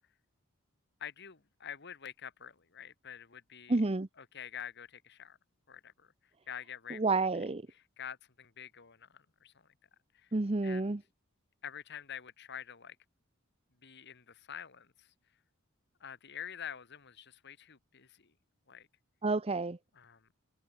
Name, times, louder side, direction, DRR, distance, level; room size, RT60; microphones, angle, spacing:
voice 1, 1.0-3.8 4.2-5.4 5.7-6.1 6.5-7.0 8.0-9.5 10.1-10.3 10.6-10.9 11.6-13.0 13.8-15.1 16.0-18.3 18.7-18.9 20.0-20.3, left 8 dB, 50° left, 1.8 m, -47 dB
voice 2, 3.7-4.1 6.9-7.6 10.3-11.0 19.2-19.8, right 3 dB, 30° right, 0.7 m, -30 dB
head